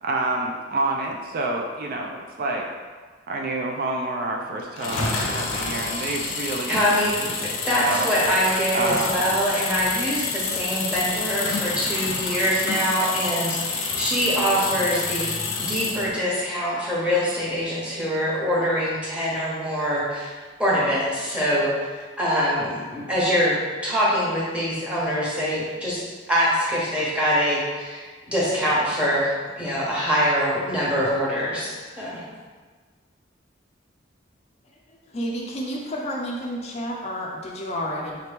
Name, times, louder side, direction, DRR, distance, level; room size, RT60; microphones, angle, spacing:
voice 1, 0.0-2.7 3.3-8.1 8.7-9.3, right 2 dB, 50° right, 1 dB, 0.4 m, -28 dB
sound 1, 4.8-16.2, left 4 dB, 90° left, 0.6 m, -28 dB
voice 2, 6.7-15.4 15.7-21.7 22.2-26.0 26.3-32.2, equal, 5° right, -7 dB, 1.0 m, -24 dB
voice 3, 35.1-38.2, equal, 35° left, -2 dB, 0.4 m, -30 dB
3.8 x 2.9 x 3.4 m, 1.4 s
head